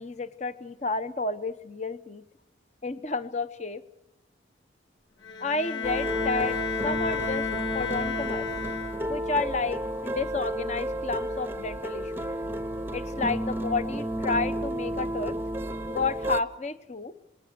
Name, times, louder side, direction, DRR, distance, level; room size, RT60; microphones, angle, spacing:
voice 1, 0.0-2.2 2.8-3.8 5.4-7.5 7.7-8.5 9.1-12.1 12.9-15.3 15.9-17.1, left 3 dB, 40° left, 13 dB, 0.9 m, -31 dB
Bowed string instrument, 5.2-9.3, left 5 dB, 80° left, 2.0 m, -32 dB
sound 1, 5.8-16.4, right 1 dB, 10° right, 0.7 m, -32 dB
26.5 x 20.0 x 6.9 m, 0.87 s
head